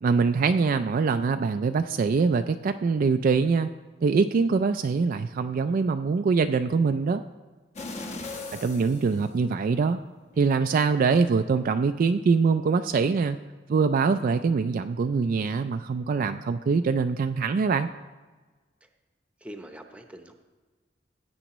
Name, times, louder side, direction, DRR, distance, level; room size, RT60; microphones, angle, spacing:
voice 1, 0.0-3.7 4.0-7.2 8.6-10.0 10.4-13.4 13.7-17.9, right 5 dB, 50° right, 8 dB, 0.3 m, -23 dB
sound 1, 7.8-9.9 10.3-10.5, left 3 dB, 40° left, 1.0 m, -39 dB
voice 2, 19.4-20.3, equal, 5° right, 5 dB, 0.8 m, -43 dB
16.0 x 8.9 x 3.0 m, 1.3 s
head